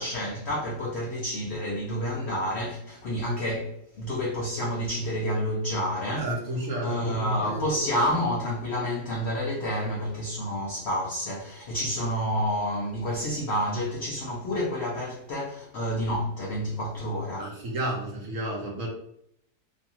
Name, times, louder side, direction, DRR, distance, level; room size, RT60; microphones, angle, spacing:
voice 1, 0.0-6.3 6.8-17.5, equal, 75° left, 0.6 m, -29 dB
voice 2, 6.2-7.8 17.4-18.9, right 1 dB, 65° right, 0.9 m, -32 dB
2.6 x 2.4 x 2.7 m
omnidirectional pair, 1.7 m